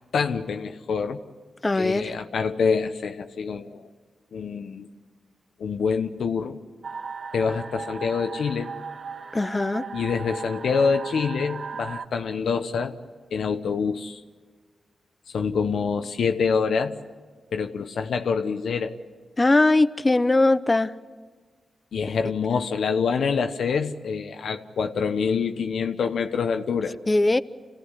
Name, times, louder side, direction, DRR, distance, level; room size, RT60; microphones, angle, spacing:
voice 1, 0.1-1.2 1.8-3.8 4.3-4.9 5.6-6.6 7.3-8.7 9.9-12.9 13.3-14.2 15.3-17.0 17.5-19.0 21.9-27.0, left 5 dB, 80° left, 1.0 m, -26 dB
voice 2, 1.6-2.2 9.3-9.8 19.4-20.9 27.1-27.4, left 2 dB, 30° left, 0.8 m, -20 dB
sound 1, 6.8-12.1, right 5 dB, 55° right, 0.8 m, -37 dB
27.0 x 16.5 x 9.8 m
cardioid pair, 55°, 0 cm